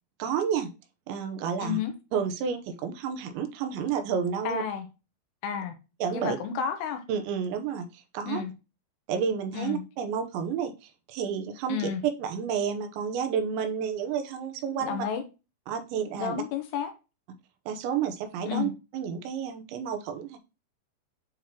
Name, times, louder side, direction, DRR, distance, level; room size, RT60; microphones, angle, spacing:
voice 1, 0.2-0.7 1.1-1.8 2.1-4.6 6.0-6.4 7.1-8.4 9.1-11.9 12.2-15.1 15.7-16.4 17.7-20.4, right 7 dB, 85° right, 3.2 m, -30 dB
voice 2, 1.6-1.9 4.4-4.9 5.4-5.8 6.1-7.0 8.2-8.5 9.5-9.8 11.7-12.0 14.7-15.2 16.2-16.9 18.5-18.7, left 8 dB, 80° left, 2.8 m, -31 dB
8.9 x 3.7 x 3.0 m
omnidirectional pair, 5.2 m